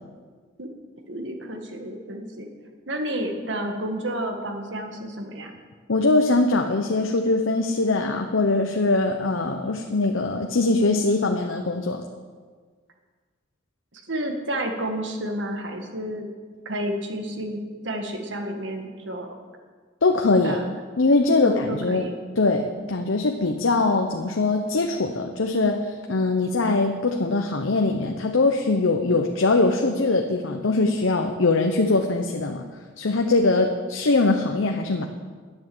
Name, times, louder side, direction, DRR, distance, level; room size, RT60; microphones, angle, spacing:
voice 1, 1.1-2.5 2.9-5.5 13.9-16.3 16.7-19.3 20.4-20.6 21.4-22.1, right 1 dB, 60° right, 4 dB, 1.7 m, -31 dB
voice 2, 5.9-12.0 20.0-20.6 21.0-22.1 22.4-32.6 33.0-35.1, left 3 dB, 70° left, 4 dB, 0.8 m, -22 dB
10.5 x 9.6 x 7.8 m, 1.5 s
head